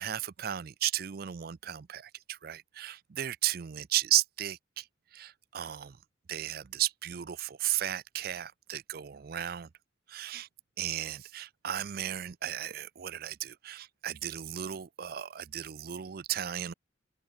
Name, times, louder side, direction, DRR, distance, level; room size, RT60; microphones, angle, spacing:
voice 1, 0.0-4.8 5.1-6.0 6.3-9.7 10.1-10.5 10.8-16.7, right 12 dB, 50° right, 0.4 m, -34 dB
head